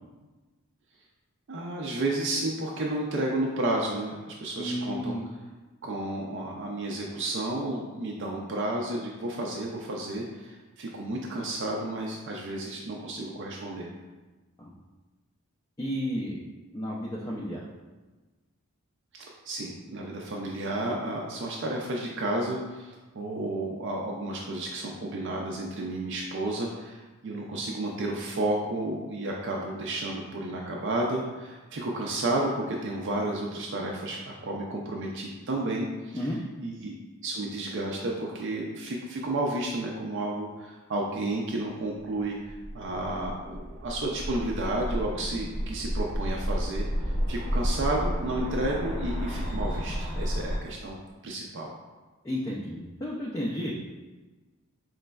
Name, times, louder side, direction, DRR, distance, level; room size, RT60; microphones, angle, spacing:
voice 1, 1.5-5.1 5.8-13.9 19.1-36.3 36.6-36.9 37.2-51.7, right 1 dB, 55° right, -2 dB, 0.4 m, -32 dB
voice 2, 4.6-5.2 14.6-14.7 15.8-16.4 16.7-17.6 36.1-36.4 52.2-53.8, equal, 20° left, -4 dB, 0.3 m, -32 dB
sound 1, 42.2-50.6, equal, 30° right, 0.7 m, -31 dB
5.0 x 3.1 x 2.2 m, 1.2 s
head